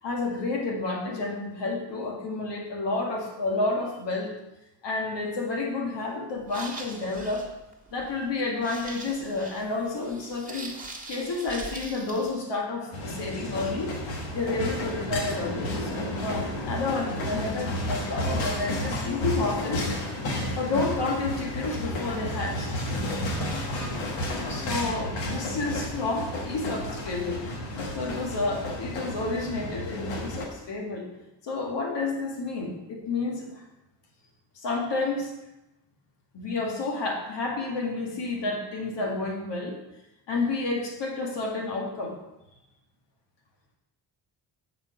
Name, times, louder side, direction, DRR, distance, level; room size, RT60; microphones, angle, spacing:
voice 1, 0.0-4.3 4.8-7.5 7.9-10.7 11.1-13.9 14.3-19.9 20.5-22.7 24.5-27.5 27.9-31.1 31.4-33.6 34.6-35.3 36.3-39.8 40.3-42.2, left 3 dB, 70° left, 0 dB, 1.9 m, -30 dB
sound 1, 6.4-12.4, right 2 dB, 20° right, 1.5 m, -42 dB
sound 2, 12.9-30.5, left 1 dB, 85° left, 1.4 m, -32 dB
7.2 x 5.0 x 5.0 m, 0.93 s
cardioid pair, 65°, 44 cm